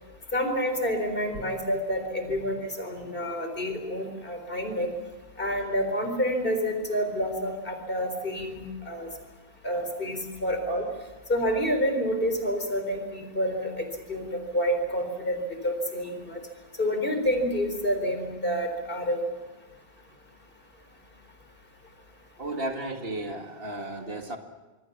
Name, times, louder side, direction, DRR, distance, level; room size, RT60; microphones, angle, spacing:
voice 1, 0.3-4.9 5.4-9.1 9.6-10.8 11.3-14.3 14.5-16.4 16.8-19.2, equal, 60° left, 6 dB, 4.3 m, -28 dB
voice 2, 22.4-24.4, right 1 dB, 65° right, 4 dB, 2.3 m, -34 dB
26.5 x 22.5 x 7.3 m, 1.2 s
omnidirectional pair, 1.0 m